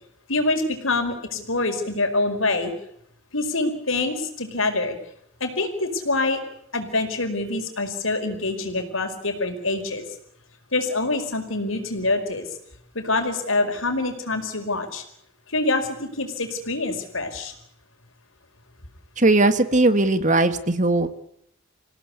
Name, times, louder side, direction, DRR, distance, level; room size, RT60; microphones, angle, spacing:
voice 1, 0.3-2.7 3.3-5.0 5.4-6.4 6.7-10.1 10.7-12.5 12.9-15.0 15.5-17.5, left 2 dB, 85° left, 6 dB, 5.1 m, -25 dB
voice 2, 19.2-21.1, right 2 dB, 40° right, 11 dB, 1.9 m, -19 dB
27.5 x 17.0 x 8.4 m, 0.74 s
head